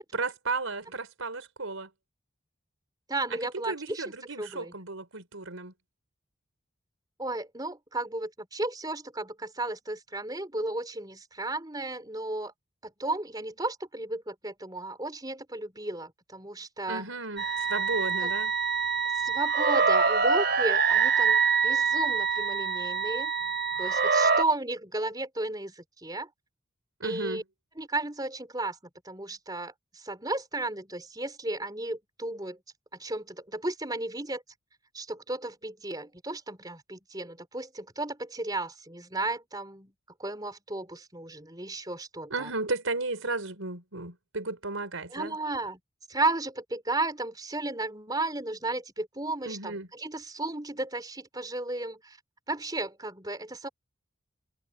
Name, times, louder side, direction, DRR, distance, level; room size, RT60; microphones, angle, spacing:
voice 1, 0.1-1.9 3.7-5.7 16.9-18.5 27.0-27.4 42.3-45.4 49.4-49.9, right 3 dB, 90° right, 4.7 m, -34 dB
voice 2, 3.1-4.7 7.2-12.5 12.8-17.0 18.2-18.3 19.2-23.3 23.8-26.3 27.0-27.4 27.8-28.8 29.0-32.6 32.9-34.4 34.9-39.9 40.2-42.5 45.1-45.8 46.1-52.2 52.5-53.7, right 2 dB, 20° right, 4.2 m, -34 dB
sound 1, 17.4-24.4, right 5 dB, 50° right, 3.4 m, -25 dB
head